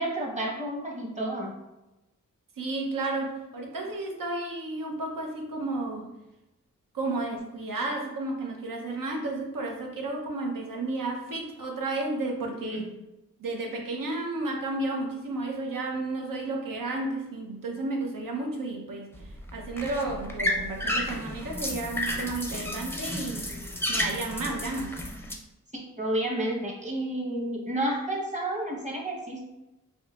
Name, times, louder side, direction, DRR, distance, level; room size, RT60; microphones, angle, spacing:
voice 1, 0.0-1.5 12.7-12.9 25.7-29.4, right 1 dB, 20° right, -1 dB, 1.0 m, -31 dB
voice 2, 2.6-6.1 6.9-12.9 13.4-19.1 19.5-23.5 23.9-25.0, right 2 dB, 85° right, 1 dB, 0.8 m, -32 dB
sound 1, 19.1-25.3, left 1 dB, 5° left, 0.5 m, -32 dB
5.3 x 2.8 x 2.4 m, 0.94 s
wide cardioid pair, 105°, 32 cm